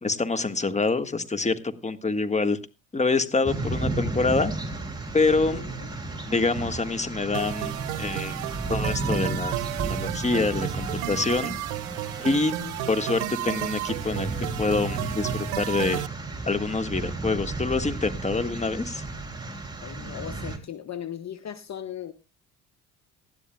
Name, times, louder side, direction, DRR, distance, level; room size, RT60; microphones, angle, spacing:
voice 1, 0.0-2.6 2.9-4.5 5.1-5.6 6.3-7.7 8.0-8.4 8.7-9.5 9.9-11.6 12.2-12.5 12.9-14.3 14.6-16.0 16.5-19.0, left 3 dB, 15° left, 10 dB, 1.6 m, -26 dB
sound 1, 3.5-20.6, right 2 dB, 10° right, 3.6 m, -33 dB
voice 2, 5.5-5.9 12.6-12.9 19.8-22.1, left 10 dB, 40° left, 11 dB, 1.1 m, -38 dB
sound 2, 7.3-16.1, right 17 dB, 75° right, 0.7 m, -33 dB
18.5 x 14.0 x 2.3 m, 0.29 s
hypercardioid pair, 50°, 41 cm